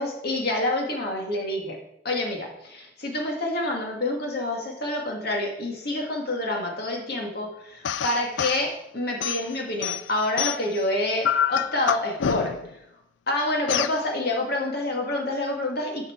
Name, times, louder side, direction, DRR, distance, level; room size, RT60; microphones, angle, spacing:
voice 1, 0.0-1.8 2.0-12.5 13.3-16.1, left 1 dB, 60° left, 1 dB, 2.1 m, -27 dB
sound 1, 7.8-8.6 9.2-10.8 11.2-12.7 13.7-14.0, left 8 dB, 90° left, 0.4 m, -27 dB
11.5 x 5.9 x 4.6 m, 0.78 s
head